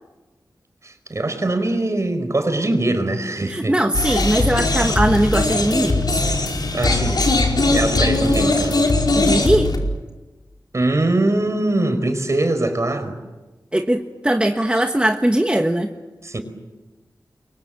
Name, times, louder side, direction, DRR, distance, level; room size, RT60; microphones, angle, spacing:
voice 1, 0.8-3.7 4.3-4.4 6.7-7.2 7.7-8.8 10.7-13.1 16.2-16.4, right 2 dB, 45° right, 8 dB, 4.7 m, -22 dB
voice 2, 3.5-6.2 9.1-9.7 13.7-15.9, right 1 dB, 15° right, 4 dB, 1.5 m, -20 dB
sound 1, 3.9-9.8, left 2 dB, 75° left, 4.8 m, -19 dB
29.5 x 23.5 x 7.6 m, 1.2 s
wide cardioid pair, 80°, 7 cm